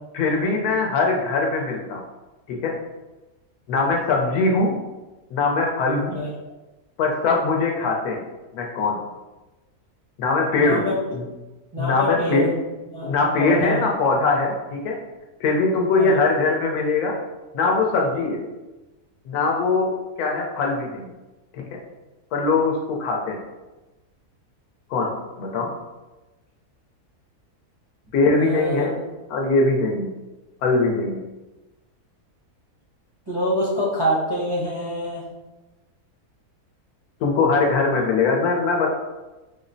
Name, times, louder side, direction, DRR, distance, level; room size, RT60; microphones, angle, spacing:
voice 1, 0.1-2.0 2.5-2.7 3.7-4.8 5.3-6.2 7.0-8.2 8.5-9.0 10.2-10.9 11.1-11.3 11.8-12.5 13.1-15.0 15.4-17.2 17.5-18.4 19.3-19.9 20.2-21.1 21.5-21.8 22.3-23.4 24.9-25.7 28.1-29.0 29.3-30.1 30.6-31.2 37.2-38.9, left 3 dB, 75° left, 1 dB, 1.1 m, -21 dB
voice 2, 10.6-10.9 11.7-12.5 12.9-13.8 16.0-16.2 28.4-28.9 33.3-35.3, equal, 30° right, -9 dB, 0.4 m, -25 dB
4.6 x 2.0 x 2.5 m, 1.1 s
omnidirectional pair, 1.7 m